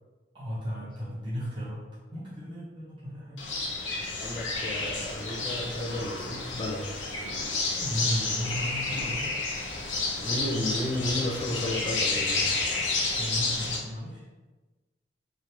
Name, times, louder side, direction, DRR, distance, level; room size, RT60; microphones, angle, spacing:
voice 1, 0.3-1.8 2.1-3.4 7.8-9.4 13.2-14.2, equal, 25° right, -10 dB, 1.0 m, -35 dB
sound 1, 3.4-13.8, left 3 dB, 85° left, 0.7 m, -30 dB
voice 2, 4.2-6.9 10.2-12.5, left 1 dB, 25° left, -2 dB, 0.6 m, -33 dB
3.0 x 2.6 x 2.9 m, 1.2 s
head